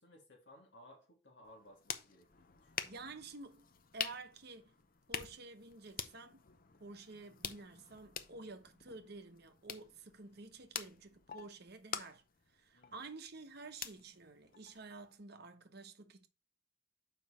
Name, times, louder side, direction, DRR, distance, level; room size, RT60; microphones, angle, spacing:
voice 1, 0.0-2.9 12.7-13.0, left 1 dB, 65° left, 2.9 m, -60 dB
sound 1, 1.4-15.2, left 8 dB, 45° left, 0.7 m, -47 dB
voice 2, 2.8-3.7 3.9-4.7 5.1-6.4 6.8-12.2 12.5-16.3, right 3 dB, 55° right, 1.0 m, -51 dB
7.0 x 5.3 x 4.2 m
head